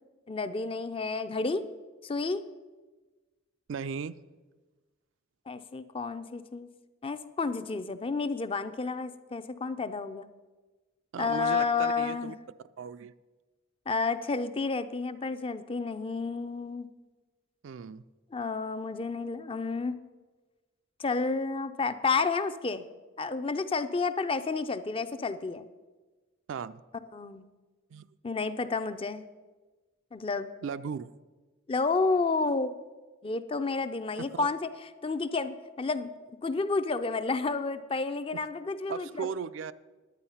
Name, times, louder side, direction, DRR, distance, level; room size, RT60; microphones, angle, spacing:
voice 1, 0.3-1.6 2.0-2.4 5.5-6.7 7.0-10.3 11.2-12.3 13.9-16.9 18.3-20.0 21.0-22.8 23.2-25.6 27.1-27.5 28.2-29.2 30.1-30.5 31.7-32.7 33.2-34.7 35.0-36.1 36.4-39.3, left 4 dB, 25° left, 12 dB, 0.5 m, -30 dB
voice 2, 3.7-4.2 11.1-12.4 12.8-13.1 17.6-18.0 26.5-26.8 27.9-28.1 30.6-31.1 34.3-34.5 38.3-38.4 38.9-39.7, right 6 dB, 75° right, 14 dB, 0.4 m, -36 dB
10.5 x 9.1 x 5.6 m, 1.3 s
head